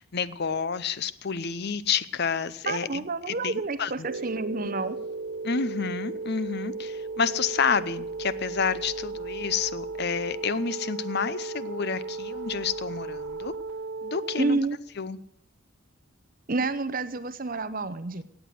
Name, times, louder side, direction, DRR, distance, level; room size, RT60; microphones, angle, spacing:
voice 1, 0.0-4.1 5.4-13.5 14.0-14.6 15.0-15.2, left 6 dB, 50° left, 16 dB, 0.7 m, -29 dB
voice 2, 2.7-5.0 14.4-14.8 16.5-18.2, right 3 dB, 40° right, 13 dB, 0.7 m, -29 dB
sound 1, 4.0-14.6, right 3 dB, 75° right, 0.8 m, -35 dB
17.5 x 8.2 x 7.7 m, 0.75 s
head